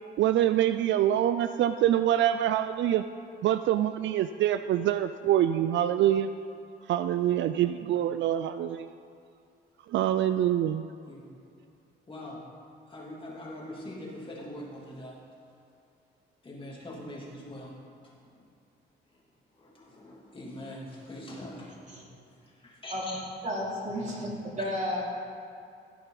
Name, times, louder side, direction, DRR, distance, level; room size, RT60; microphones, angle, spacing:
voice 1, 0.2-3.0 3.4-6.3 6.9-8.9 9.9-10.9, right 11 dB, 70° right, 11 dB, 0.4 m, -25 dB
voice 2, 12.1-12.4 12.9-15.2 16.4-17.7 19.5-21.7 22.4-23.2 24.6-24.7, left 1 dB, 25° left, -4 dB, 2.8 m, -42 dB
voice 3, 23.4-24.3 24.6-25.0, equal, 35° right, -4 dB, 3.2 m, -32 dB
15.5 x 8.4 x 4.0 m, 2.5 s
cardioid pair, 90°, 20 cm